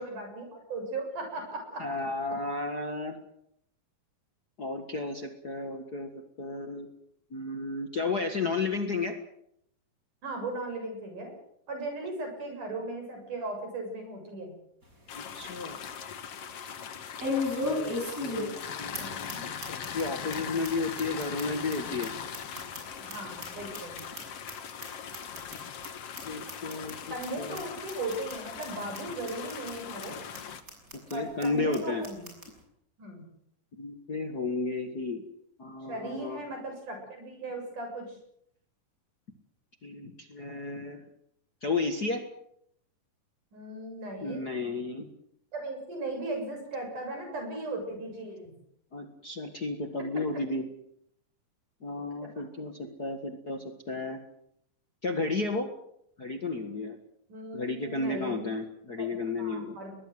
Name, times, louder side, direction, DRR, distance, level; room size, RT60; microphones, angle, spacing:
voice 1, 0.0-1.9 10.2-11.3 11.7-14.5 19.0-19.4 23.0-24.0 27.1-30.2 31.1-32.3 33.0-33.2 35.9-38.2 43.5-44.5 45.5-48.5 50.1-50.4 52.8-52.9 57.3-58.4 59.0-60.0, right 2 dB, 65° right, 4 dB, 8.7 m, -37 dB
voice 2, 1.8-3.2 4.6-6.1 6.4-6.9 7.3-9.1 15.1-15.8 17.6-22.1 26.3-27.6 30.9-32.1 33.7-35.2 35.6-36.4 39.8-41.0 41.6-42.2 44.2-45.1 48.9-50.6 51.8-54.2 55.0-55.7 56.2-57.0 57.5-59.8, left 3 dB, 35° left, 5 dB, 1.7 m, -33 dB
sound 1, 14.8-14.9 15.4-15.5 17.2-18.7 18.9-19.0 19.3-19.4 19.6-20.0 20.3-20.4 20.6-20.7 21.0-23.1 23.4-24.5 24.8-24.9 25.1-25.6 25.8-25.9 26.2-26.3 26.5-26.9 27.2-27.3 27.6-27.7 27.9-28.3 28.6-28.7 28.9-29.0 29.3-29.7 30.0-30.1 30.3-30.4 30.7-31.1 31.4-31.5 31.7-31.8 32.0-32.5, left 2 dB, 25° right, 7.2 m, -34 dB
sound 2, 15.1-30.6, left 7 dB, 55° left, 2.3 m, -40 dB
22.0 x 20.0 x 7.9 m, 0.72 s
omnidirectional pair, 3.8 m